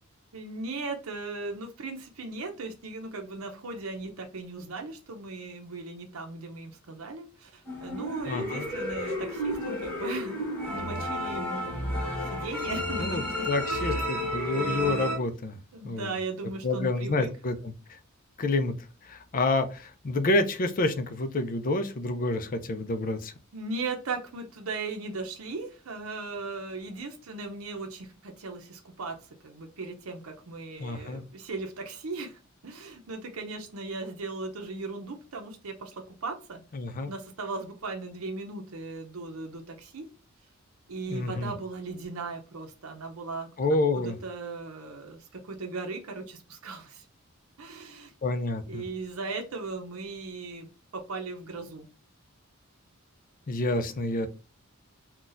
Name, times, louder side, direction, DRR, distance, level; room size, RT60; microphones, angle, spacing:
voice 1, 0.3-13.3 13.7-14.0 15.7-17.3 23.5-29.2 29.4-36.6 37.1-40.0 40.9-43.5 43.9-47.1 47.6-48.1 48.7-51.9, right 3 dB, 90° right, 3 dB, 0.7 m, -38 dB
sound 1, 7.7-15.1, equal, 10° left, 1.5 m, -32 dB
voice 2, 8.3-8.7 13.0-15.6 15.8-16.1 16.6-18.0 18.4-18.7 19.0-23.3 30.8-31.2 36.7-37.1 41.1-41.5 43.6-44.2 48.2-48.8 53.5-54.3, left 2 dB, 40° left, 9 dB, 0.5 m, -28 dB
3.9 x 2.3 x 2.5 m, 0.34 s
head